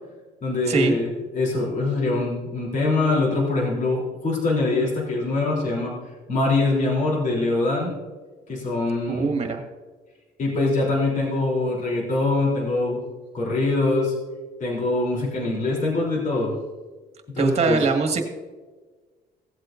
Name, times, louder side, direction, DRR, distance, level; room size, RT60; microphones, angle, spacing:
voice 1, 0.4-5.9 6.3-7.9 8.5-9.3 10.4-13.0 13.3-14.1 14.6-16.5 17.3-17.8, left 2 dB, 50° left, -3 dB, 3.3 m, -23 dB
voice 2, 9.1-9.6 17.4-18.2, right 4 dB, 40° right, 4 dB, 1.8 m, -22 dB
16.5 x 8.1 x 2.6 m, 1.3 s
cardioid pair, 110°, 17 cm